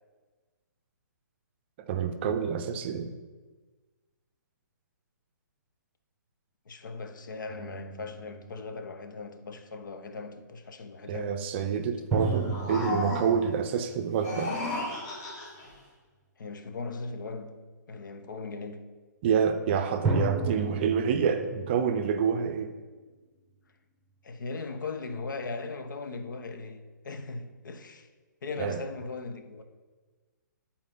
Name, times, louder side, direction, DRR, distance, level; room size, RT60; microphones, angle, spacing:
voice 1, 1.8-3.1 11.1-14.6 19.2-22.7 28.6-28.8, right 7 dB, 35° right, 0.5 m, -28 dB
voice 2, 6.7-11.4 16.4-17.6 17.9-18.8 24.2-28.1 28.4-29.6, left 3 dB, 75° left, 0.9 m, -38 dB
sound 1, 7.5-9.1 12.1-14.8 20.0-23.0, right 4 dB, 10° right, 1.0 m, -33 dB
sound 2, 12.2-13.5 14.1-15.7, left 2 dB, 30° left, 2.3 m, -34 dB
9.7 x 4.3 x 3.8 m
hypercardioid pair, 150°, 10 cm